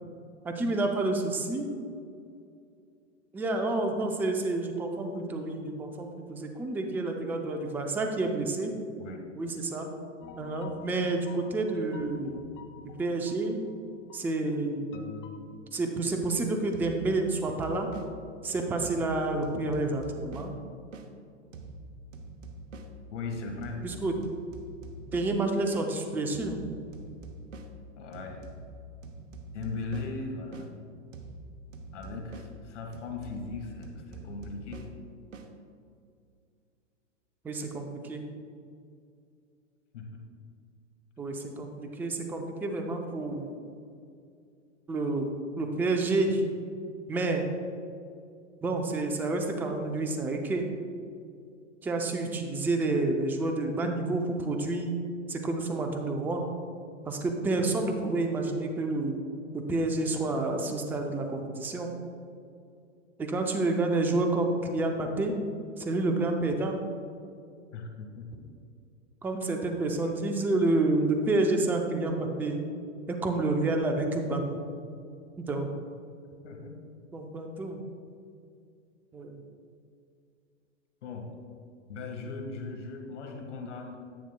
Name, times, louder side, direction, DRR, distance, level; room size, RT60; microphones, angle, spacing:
voice 1, 0.4-1.7 3.3-8.7 9.3-9.9 10.4-12.4 12.8-13.6 14.1-14.9 15.7-17.9 18.4-20.5 23.8-24.1 25.1-26.6 37.4-38.2 41.2-43.6 44.9-45.3 45.6-46.4 47.1-47.5 48.6-50.7 51.8-54.9 55.3-56.4 57.1-59.2 59.5-61.9 63.2-65.4 65.8-66.8 69.2-72.6 73.1-74.6 75.4-75.7 77.1-77.8 79.1-79.4, right 2 dB, 5° right, 4 dB, 0.4 m, -29 dB
sound 1, 10.2-13.7 14.1-14.3 14.9-15.4, left 7 dB, 30° left, 0.7 m, -47 dB
sound 2, 16.7-21.1 21.5-25.9 26.3-30.7 31.1-35.5, right 1 dB, 75° right, 1.0 m, -45 dB
voice 2, 23.1-23.8 27.9-28.4 29.5-30.7 31.9-34.9 39.9-40.2 67.7-68.5 76.4-76.8 81.0-81.3 81.9-84.0, left 3 dB, 65° left, 3 dB, 1.7 m, -38 dB
10.5 x 8.9 x 2.2 m, 2.4 s
hypercardioid pair, 115°, 38 cm